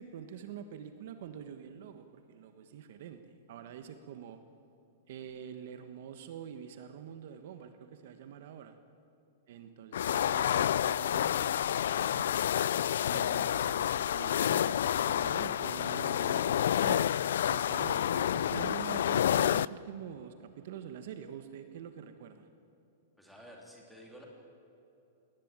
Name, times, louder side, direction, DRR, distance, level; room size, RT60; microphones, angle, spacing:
voice 1, 0.0-4.4 5.1-8.8 9.5-12.6 13.1-17.1 17.5-22.5, right 9 dB, 50° right, 9 dB, 1.3 m, -46 dB
sound 1, 9.9-19.7, left 10 dB, 70° left, 0.4 m, -29 dB
voice 2, 23.2-24.3, equal, ahead, -1 dB, 3.3 m, -52 dB
21.0 x 19.0 x 9.0 m, 2.9 s
supercardioid pair, 175°, 0 cm